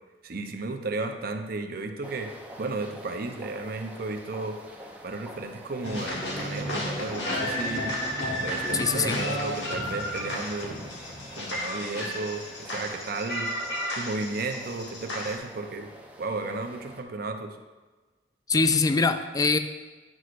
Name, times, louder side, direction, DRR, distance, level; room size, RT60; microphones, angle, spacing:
voice 1, 0.2-2.3 2.6-4.6 5.0-8.0 8.4-10.8 11.3-13.5 14.0-15.9 16.2-17.6, right 3 dB, 55° right, 5 dB, 0.7 m, -33 dB
sound 1, 2.0-17.0, right 1 dB, 10° right, 0.6 m, -47 dB
sound 2, 5.8-15.4, equal, 75° left, 1.3 m, -32 dB
voice 2, 8.7-9.2 18.5-19.6, left 4 dB, 20° left, 9 dB, 0.3 m, -23 dB
9.5 x 6.1 x 2.5 m, 1.3 s
head